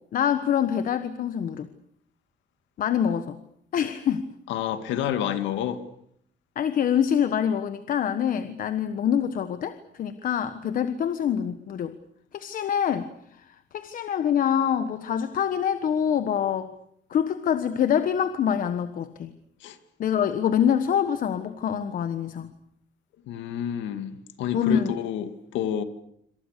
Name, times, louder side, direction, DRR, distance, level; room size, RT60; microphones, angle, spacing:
voice 1, 0.1-1.7 2.8-3.4 3.7-4.3 6.6-11.9 12.3-13.1 13.7-16.7 17.1-19.3 20.0-22.5 24.5-24.9, left 8 dB, 50° left, 1.3 m, -25 dB
voice 2, 4.5-5.8 19.6-19.8 23.3-25.8, left 10 dB, 90° left, 2.3 m, -29 dB
27.0 x 26.5 x 6.8 m
cardioid pair, 160°, 19 cm